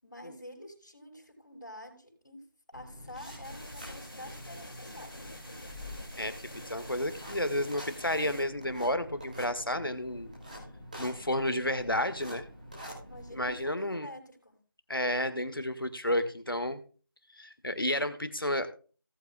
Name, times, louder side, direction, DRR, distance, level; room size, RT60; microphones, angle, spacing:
voice 1, 0.0-5.2 13.0-14.6, left 1 dB, 50° left, -1 dB, 5.8 m, -48 dB
sound 1, 2.7-13.6, equal, 20° right, 2.6 m, -46 dB
sound 2, 3.4-8.4, left 1 dB, ahead, 1.7 m, -48 dB
voice 2, 6.7-10.3 11.0-12.5 13.3-14.1 14.9-16.8 17.3-18.7, left 1 dB, 75° left, 10 dB, 1.8 m, -31 dB
18.0 x 8.2 x 2.3 m, 0.38 s
figure-of-eight pair, 170°, 12 cm